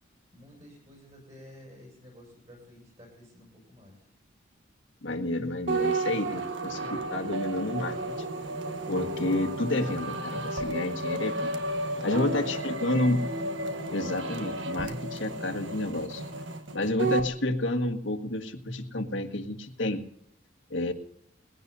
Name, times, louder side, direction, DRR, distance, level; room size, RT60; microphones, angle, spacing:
voice 1, 0.3-4.0 11.9-13.0, left 1 dB, 35° right, -4 dB, 6.7 m, -51 dB
voice 2, 5.0-8.0 8.9-11.5 12.0-13.2 13.9-16.2 16.7-20.0 20.7-20.9, left 1 dB, 75° left, 5 dB, 1.6 m, -30 dB
sound 1, 5.7-17.3, right 2 dB, 75° right, 1.5 m, -32 dB
21.0 x 16.5 x 2.7 m, 0.73 s
head